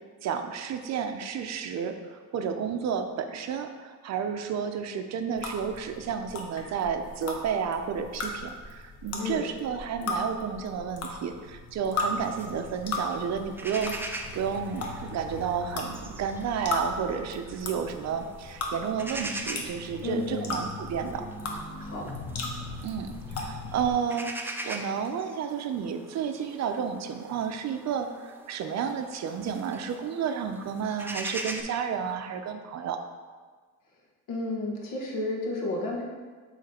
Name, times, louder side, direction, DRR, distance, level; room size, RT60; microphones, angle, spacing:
voice 1, 0.2-21.3 22.8-33.0, right 7 dB, 55° right, 7 dB, 0.5 m, -31 dB
sound 1, 5.4-23.9, left 2 dB, 50° left, 1.0 m, -37 dB
voice 2, 9.2-9.5 20.0-20.6 21.8-22.1 34.3-36.0, left 2 dB, 75° left, -1 dB, 1.4 m, -32 dB
sound 2, 12.2-31.6, right 2 dB, 5° right, 0.4 m, -42 dB
7.5 x 3.3 x 4.2 m, 1.5 s
cardioid pair, 130°, 33 cm